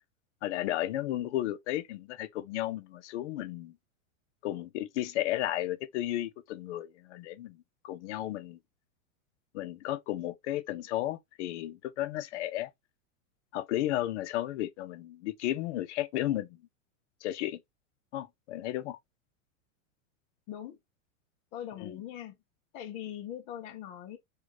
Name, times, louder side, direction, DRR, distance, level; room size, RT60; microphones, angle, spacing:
voice 1, 0.4-3.7 4.4-7.6 7.8-8.6 9.5-12.7 13.5-16.6 17.2-17.6 18.1-19.0 21.8-21.9, left 14 dB, 60° left, 0.6 m, -33 dB
voice 2, 20.5-20.8 21.5-22.4 22.7-24.2, left 10 dB, 20° left, 0.3 m, -41 dB
4.4 x 2.2 x 3.0 m
supercardioid pair, 155°, 41 cm